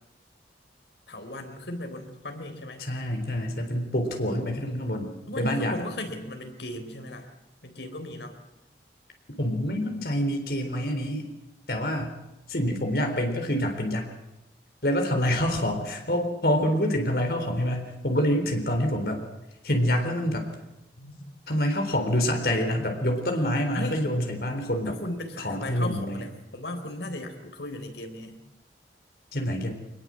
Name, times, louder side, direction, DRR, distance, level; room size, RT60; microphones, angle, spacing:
voice 1, 1.1-2.9 5.3-7.3 7.6-8.4 21.0-21.2 23.7-24.0 24.9-28.4, left 1 dB, 85° left, 6 dB, 3.8 m, -36 dB
voice 2, 2.8-5.7 9.4-11.2 11.7-12.2 12.5-14.1 14.8-19.2 19.6-20.5 21.5-25.0 25.4-26.2 29.3-29.7, equal, 60° left, 4 dB, 3.9 m, -26 dB
24.0 x 21.0 x 7.7 m, 0.92 s
head